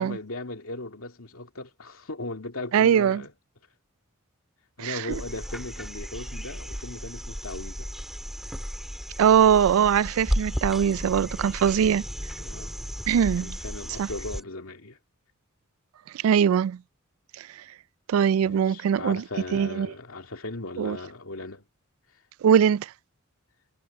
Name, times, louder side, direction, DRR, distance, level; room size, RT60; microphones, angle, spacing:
voice 1, 0.0-3.3 4.8-7.9 11.8-12.0 12.4-12.8 13.1-15.0 18.4-21.6, left 2 dB, 90° left, 2.4 m, -38 dB
voice 2, 2.7-3.2 4.8-5.0 9.2-12.0 13.1-13.5 14.0-14.1 16.2-16.8 18.1-19.2 19.5-19.9 20.8-21.0 22.4-22.9, right 8 dB, 80° right, 0.3 m, -21 dB
sound 1, 5.1-14.4 16.5-16.6, equal, ahead, 2.1 m, -34 dB
head